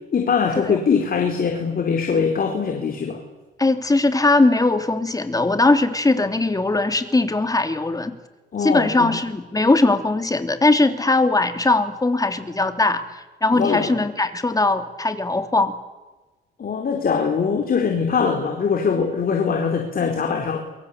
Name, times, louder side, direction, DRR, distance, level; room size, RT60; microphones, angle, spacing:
voice 1, 0.1-3.2 8.5-9.1 13.5-13.9 16.6-20.6, left 6 dB, 45° left, 3 dB, 4.1 m, -22 dB
voice 2, 3.6-8.2 8.6-13.0 13.4-15.8, left 2 dB, 20° left, 8 dB, 3.0 m, -20 dB
28.5 x 23.5 x 8.5 m, 1.2 s
cardioid pair, 90°, 20 cm